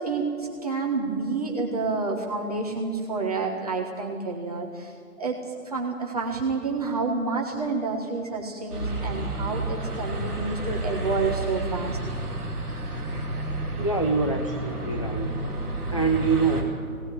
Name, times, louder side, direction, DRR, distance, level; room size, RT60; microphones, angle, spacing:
voice 1, 0.0-5.4 5.6-12.0, right 4 dB, 25° right, -1 dB, 1.5 m, -29 dB
sound 1, 8.7-16.6, right 1 dB, ahead, 1.2 m, -31 dB
voice 2, 13.8-15.3 15.9-16.8, right 4 dB, 20° left, 2 dB, 0.7 m, -25 dB
20.5 x 18.0 x 9.5 m, 2.3 s
figure-of-eight pair, 170°, 45 cm